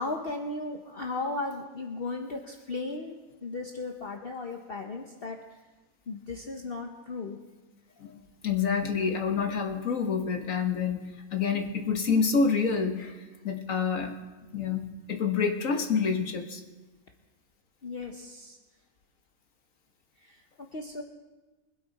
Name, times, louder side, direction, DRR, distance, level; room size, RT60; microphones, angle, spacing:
voice 1, 0.0-5.4 6.1-7.4 17.8-18.6 20.2-20.4 20.7-21.0, left 3 dB, 45° left, 2 dB, 1.1 m, -36 dB
voice 2, 8.0-13.2 13.4-14.2 14.5-16.6, left 5 dB, 65° left, 4 dB, 1.8 m, -28 dB
24.5 x 9.1 x 4.2 m, 1.2 s
omnidirectional pair, 1.5 m